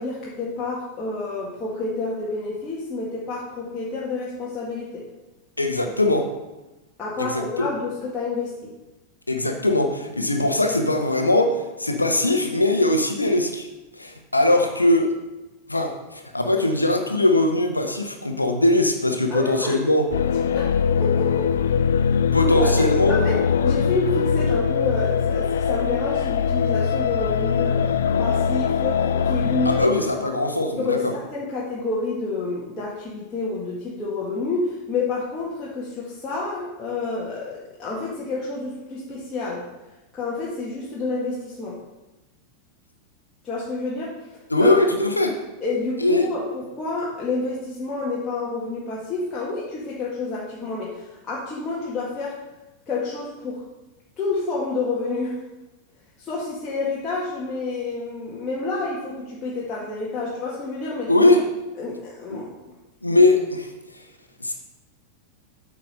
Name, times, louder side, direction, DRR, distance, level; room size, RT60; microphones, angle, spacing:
voice 1, 0.0-5.0 7.0-8.7 19.3-19.8 20.5-20.7 21.0-21.6 22.6-22.7 23.1-23.4 23.6-29.9 30.8-39.6 40.1-41.8 43.4-44.1 44.6-44.8 45.6-52.4 52.9-53.6 54.2-55.4 56.2-61.1 61.8-62.5, left 3 dB, 20° left, -7 dB, 1.9 m, -29 dB
voice 2, 5.6-6.3 7.2-7.7 9.3-13.7 14.0-15.1 15.7-20.0 22.3-23.1 29.6-31.0 44.5-45.3 46.0-46.2 61.1-61.4 62.3-62.4 63.0-63.7 64.4-64.5, left 2 dB, 85° left, 4 dB, 1.1 m, -20 dB
sound 1, 20.1-29.9, left 6 dB, 65° left, 0.3 m, -22 dB
8.7 x 4.9 x 5.4 m, 1.0 s
figure-of-eight pair, 90°, 0 cm